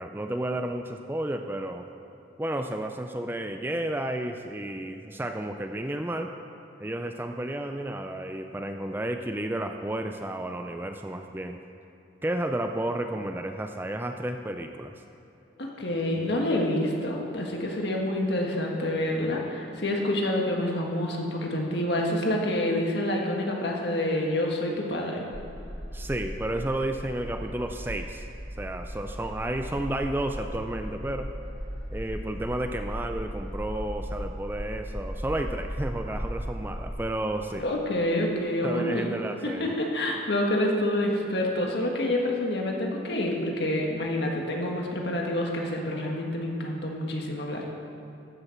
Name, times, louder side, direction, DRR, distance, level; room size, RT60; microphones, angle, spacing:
voice 1, 0.0-1.9 2.4-6.3 6.8-11.6 12.2-14.9 25.9-28.3 28.6-31.3 31.9-37.6 38.6-39.7, right 1 dB, 10° right, 5 dB, 0.4 m, -32 dB
voice 2, 15.6-25.2 37.5-39.1 39.4-47.7, left 1 dB, 60° left, 0 dB, 1.7 m, -27 dB
sound 1, 25.3-36.9, equal, 5° left, 2.3 m, -37 dB
14.5 x 6.8 x 5.8 m, 2.9 s
head